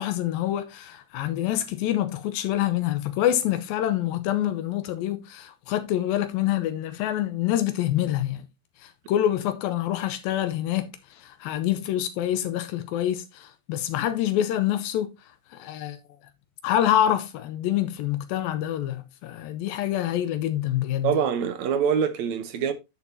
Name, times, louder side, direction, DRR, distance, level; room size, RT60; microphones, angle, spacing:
voice 1, 0.0-8.4 8.8-15.1 15.5-16.0 16.6-21.2, left 12 dB, 85° left, 2.5 m, -26 dB
voice 2, 21.0-22.7, right 7 dB, 70° right, 1.9 m, -24 dB
10.0 x 7.2 x 2.7 m
omnidirectional pair, 4.2 m